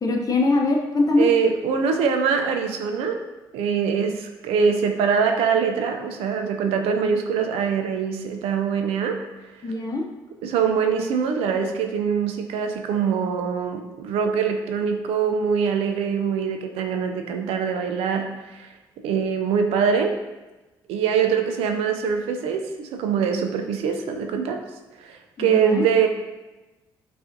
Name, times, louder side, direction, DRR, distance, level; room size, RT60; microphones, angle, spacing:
voice 1, 0.0-1.3 9.6-10.0 25.4-25.8, left 2 dB, 40° left, 1 dB, 0.7 m, -22 dB
voice 2, 1.2-3.2 3.5-9.2 10.4-18.7 19.0-20.2 20.9-24.6 25.0-26.1, right 6 dB, 80° right, 5 dB, 0.4 m, -23 dB
4.8 x 2.4 x 2.6 m, 1.1 s
supercardioid pair, 50°, 10 cm